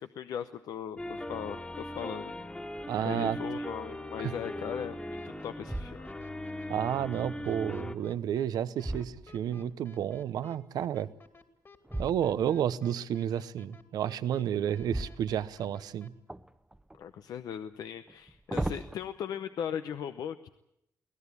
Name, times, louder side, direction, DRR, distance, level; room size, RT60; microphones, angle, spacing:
voice 1, 0.0-2.3 3.0-6.2 16.9-20.5, left 8 dB, 80° left, 10 dB, 0.8 m, -38 dB
sound 1, 1.0-7.9, left 1 dB, 15° left, 1.8 m, -39 dB
sound 2, 2.7-3.2 3.7-3.8 4.4-5.0 5.6-6.5 8.1-9.8 11.8-12.7 14.7-15.9 16.3-17.0 18.1-19.0, right 1 dB, 10° right, 0.9 m, -39 dB
voice 2, 2.9-3.4 4.2-4.3 6.7-11.1 12.0-16.1, right 9 dB, 80° right, 15 dB, 0.8 m, -31 dB
sound 3, 5.2-16.1, left 3 dB, 40° left, 2.6 m, -55 dB
24.0 x 17.0 x 8.3 m, 0.82 s
cardioid pair, 80°, 7 cm